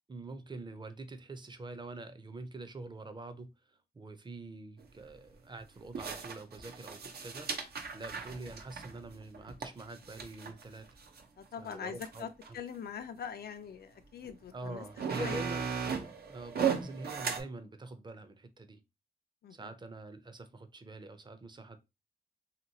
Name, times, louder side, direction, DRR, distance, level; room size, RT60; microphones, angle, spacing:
voice 1, 0.1-7.7 7.9-10.9 11.6-12.6 14.5-15.7 16.3-18.8 19.5-21.8, right 2 dB, 30° right, 0.5 m, -45 dB
sound 1, 4.8-4.9 5.9-11.2 11.7-11.8 12.0-12.5 13.3-13.4 14.2-14.3 14.7-17.4, right 7 dB, 85° right, 0.6 m, -36 dB
voice 2, 11.4-15.5 19.4-19.7, left 7 dB, 80° left, 0.4 m, -43 dB
3.0 x 2.9 x 2.7 m
wide cardioid pair, 90°, 16 cm